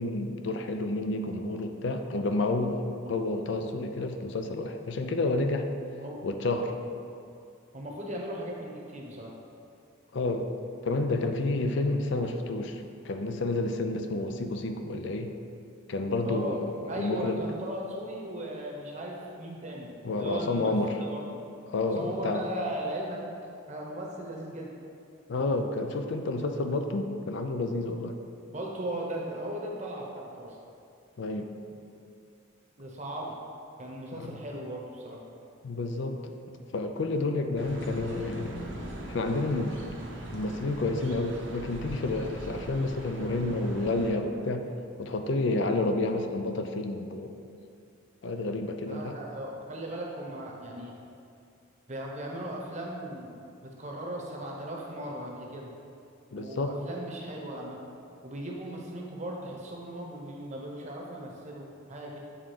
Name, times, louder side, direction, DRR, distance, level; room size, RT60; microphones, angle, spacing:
voice 1, 0.0-5.7 6.2-6.7 10.1-10.5 10.8-15.3 15.9-17.4 20.0-21.0 21.7-22.5 25.3-28.2 31.2-31.5 34.2-34.4 35.6-36.4 36.7-38.7 39.1-39.8 40.3-44.7 45.0-47.3 48.2-49.2 56.3-56.8, left 2 dB, 60° left, 6 dB, 0.4 m, -30 dB
voice 2, 7.7-9.3 16.2-20.7 21.0-21.2 21.9-23.2 23.7-24.7 28.5-30.6 32.8-33.3 33.8-35.2 48.9-51.0 51.9-55.8 56.3-57.8 58.2-62.2, right 1 dB, 35° right, -2 dB, 0.9 m, -37 dB
sound 1, 37.6-44.1, right 1 dB, 65° right, 0.9 m, -41 dB
7.9 x 3.6 x 5.0 m, 2.5 s
head